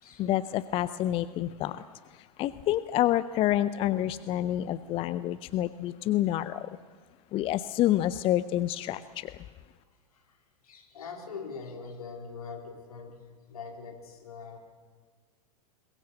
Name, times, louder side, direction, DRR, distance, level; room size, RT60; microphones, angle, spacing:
voice 1, 0.2-1.8 2.4-6.7 7.3-9.3, left 13 dB, 30° left, 15 dB, 0.6 m, -28 dB
voice 2, 10.1-13.2 13.5-14.6, left 5 dB, 65° left, 3 dB, 3.9 m, -43 dB
22.0 x 21.0 x 7.8 m, 1.5 s
figure-of-eight pair, 95°, 20 cm